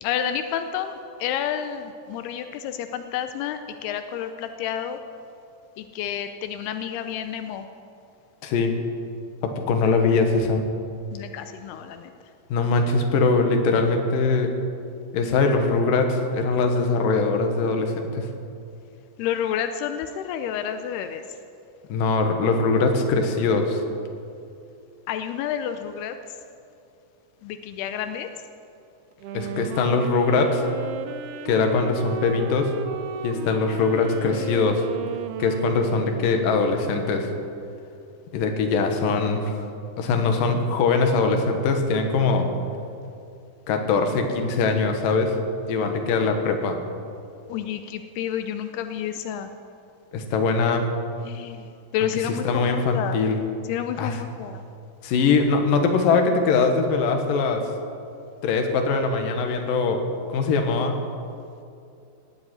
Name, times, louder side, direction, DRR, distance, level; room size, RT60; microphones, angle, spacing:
voice 1, 0.0-5.0 5.8-7.7 11.1-12.1 19.2-21.2 25.1-26.2 27.4-28.3 47.5-49.5 51.3-51.7 51.9-53.2 53.7-54.6, left 9 dB, 85° left, 8 dB, 2.7 m, -30 dB
voice 2, 8.4-8.8 9.4-10.7 12.5-14.5 15.1-18.3 21.9-23.8 29.3-30.6 31.5-32.7 33.2-34.9 35.4-37.3 38.3-39.5 40.0-42.5 43.7-45.4 45.7-46.8 50.1-50.8 52.3-53.4 54.0-54.2 55.0-57.7 58.4-60.0 60.3-61.0, left 4 dB, 65° left, 5 dB, 2.9 m, -22 dB
Wind instrument woodwind instrument, 29.1-36.8, right 6 dB, 90° right, 2.8 m, -34 dB
19.0 x 8.1 x 9.3 m, 2.5 s
omnidirectional pair, 4.5 m